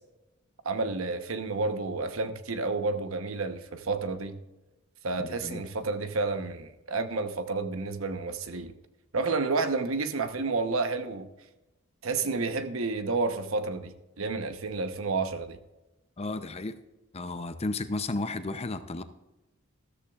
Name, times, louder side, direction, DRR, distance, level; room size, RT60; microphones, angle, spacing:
voice 1, 0.6-4.3 5.0-8.7 9.1-11.3 12.0-15.6, right 3 dB, 70° right, 1.0 m, -30 dB
voice 2, 5.2-5.6 16.2-16.7 17.1-19.0, left 2 dB, 30° left, 0.6 m, -33 dB
13.5 x 13.5 x 2.4 m
head